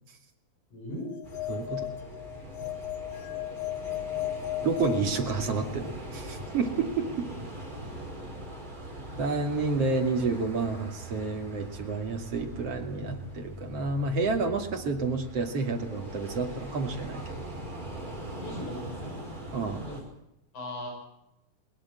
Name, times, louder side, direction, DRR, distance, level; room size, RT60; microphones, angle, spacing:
voice 1, 0.7-1.1 8.9-9.3 18.4-19.2 19.8-20.0 20.5-20.9, left 1 dB, 55° left, 1 dB, 7.3 m, -39 dB
sound 1, 1.1-5.9, left 13 dB, 75° left, 3.0 m, -36 dB
sound 2, 1.2-20.0, right 1 dB, 10° right, 5.1 m, -41 dB
voice 2, 1.5-1.9 4.6-7.3 9.2-17.4 19.5-19.9, right 4 dB, 45° right, 3 dB, 3.3 m, -30 dB
21.5 x 20.5 x 7.5 m, 0.87 s
omnidirectional pair, 4.1 m